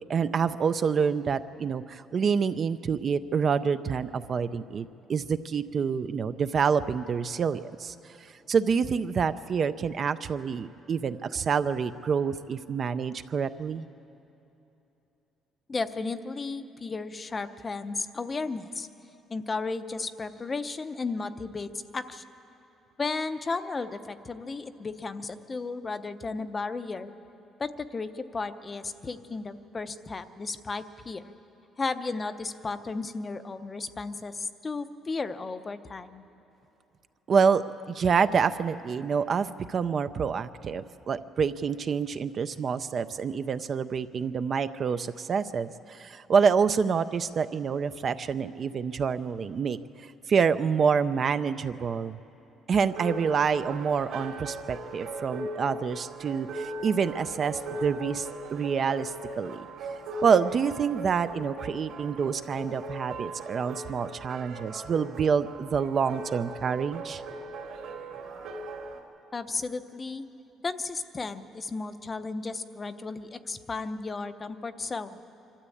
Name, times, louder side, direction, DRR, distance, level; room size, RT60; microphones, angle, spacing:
voice 1, 0.0-4.8 5.1-7.9 8.5-13.9 37.3-52.2 52.7-59.7 60.2-67.2, right 6 dB, 35° right, 12 dB, 0.4 m, -27 dB
voice 2, 15.7-18.9 19.3-22.2 23.0-27.1 27.6-31.3 31.8-36.2 69.3-70.2 70.6-75.2, left 3 dB, 20° left, 11 dB, 0.6 m, -34 dB
sound 1, 52.9-69.0, right 2 dB, 70° right, 2.9 m, -39 dB
25.0 x 13.0 x 8.5 m, 3.0 s
cardioid pair, 160°, 0 cm